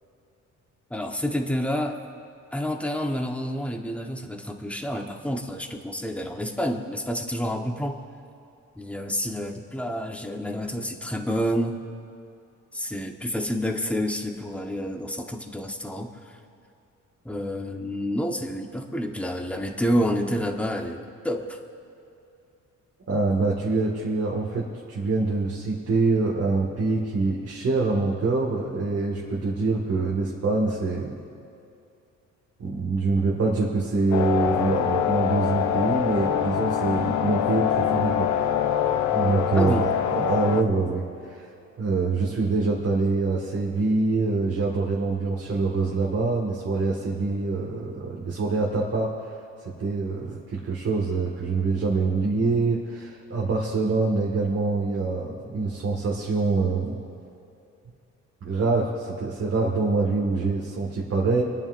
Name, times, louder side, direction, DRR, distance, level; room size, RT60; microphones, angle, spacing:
voice 1, 0.9-2.0 2.5-8.0 8.8-11.8 12.7-16.4 17.2-21.6 39.5-39.9, equal, 5° left, 3 dB, 1.2 m, -29 dB
voice 2, 23.1-31.2 32.6-38.3 39.1-41.4 41.8-49.1 49.8-57.0 58.4-61.4, right 3 dB, 55° right, -4 dB, 2.0 m, -25 dB
sound 1, 34.1-40.6, left 9 dB, 70° left, 0.8 m, -24 dB
28.5 x 9.6 x 2.7 m, 2.7 s
cardioid pair, 90°, 30 cm